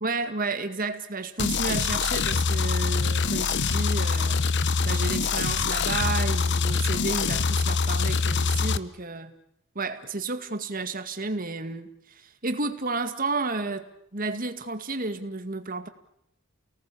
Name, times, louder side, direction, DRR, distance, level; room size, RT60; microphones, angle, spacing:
voice 1, 0.0-4.4 4.8-9.3 9.8-15.9, right 3 dB, 40° right, 8 dB, 2.1 m, -32 dB
sound 1, 1.4-8.8, left 4 dB, 55° left, 0.9 m, -24 dB
30.0 x 18.5 x 8.6 m, 0.76 s
head